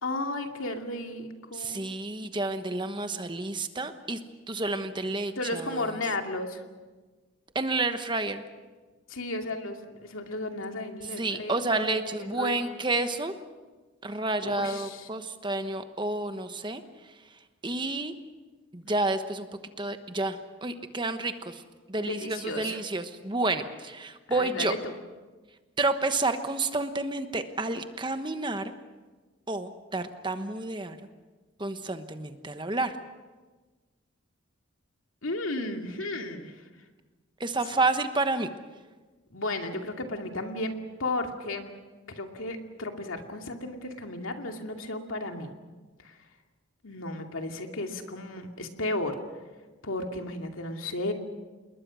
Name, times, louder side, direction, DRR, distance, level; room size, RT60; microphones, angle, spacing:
voice 1, 0.0-1.9 5.4-6.6 9.1-12.7 14.1-15.1 22.0-22.8 24.3-24.9 35.2-36.6 39.3-40.7 41.0-41.7 42.1-45.5 46.0-46.2 46.8-49.2 49.8-51.1, left 2 dB, 85° left, 4 dB, 2.5 m, -34 dB
voice 2, 1.5-4.2 4.5-6.0 7.5-8.4 11.2-13.3 14.0-17.1 17.6-18.1 18.7-19.5 19.8-21.6 21.9-24.7 25.8-28.7 29.5-31.0 31.6-33.0 37.4-38.5, right 2 dB, 25° right, 8 dB, 1.1 m, -30 dB
28.5 x 21.0 x 6.3 m, 1.3 s
head